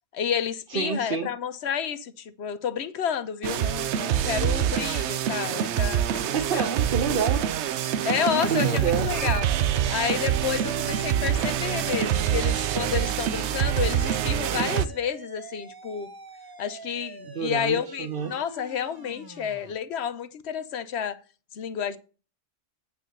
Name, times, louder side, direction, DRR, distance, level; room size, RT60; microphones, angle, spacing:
voice 1, 0.1-6.7 8.0-9.5 9.9-16.1 16.6-21.2 21.5-22.0, left 8 dB, 65° left, 1.0 m, -30 dB
voice 2, 0.7-1.3 6.2-7.4 8.3-9.3 17.3-18.3, right 6 dB, 50° right, 0.9 m, -28 dB
sound 1, 3.4-14.9, right 10 dB, 75° right, 0.9 m, -26 dB
sound 2, 5.3-19.7, right 3 dB, 25° right, 0.6 m, -45 dB
9.0 x 4.7 x 6.4 m
omnidirectional pair, 1.2 m